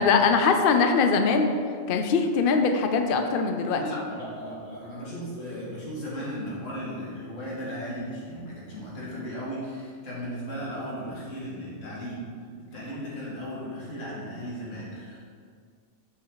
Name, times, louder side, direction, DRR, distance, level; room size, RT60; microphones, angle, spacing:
voice 1, 0.0-1.5 1.9-3.8, left 5 dB, 60° left, 5 dB, 0.6 m, -22 dB
voice 2, 3.7-12.3 12.7-15.2, equal, 85° left, -6 dB, 2.2 m, -36 dB
7.4 x 5.4 x 3.8 m, 2.1 s
omnidirectional pair, 1.3 m